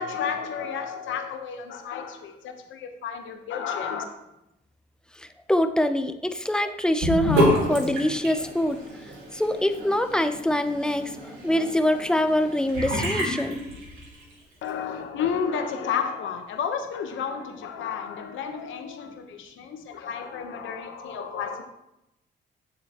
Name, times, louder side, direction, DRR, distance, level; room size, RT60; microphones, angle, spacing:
voice 1, 0.0-4.0 14.6-21.6, left 7 dB, 80° left, 5 dB, 1.0 m, -31 dB
voice 2, 5.2-8.8 9.3-13.6, left 1 dB, 5° left, 8 dB, 0.6 m, -24 dB
Sink (filling or washing) / Bathtub (filling or washing), 7.0-14.3, equal, 85° right, 3.1 m, -29 dB
9.5 x 7.5 x 3.0 m, 0.87 s
cardioid pair, 90°, 20 cm